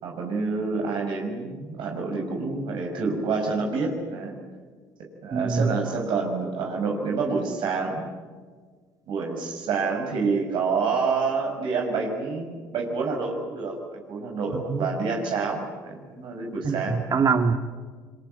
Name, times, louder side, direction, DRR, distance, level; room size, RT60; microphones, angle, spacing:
voice 1, 0.0-4.4 5.2-8.1 9.1-17.0, right 4 dB, 60° right, 1 dB, 6.0 m, -28 dB
voice 2, 5.3-5.7 14.5-14.9 16.6-17.5, right 5 dB, 40° right, 8 dB, 2.2 m, -24 dB
28.5 x 23.0 x 8.2 m, 1.5 s
hypercardioid pair, 65°, 9 cm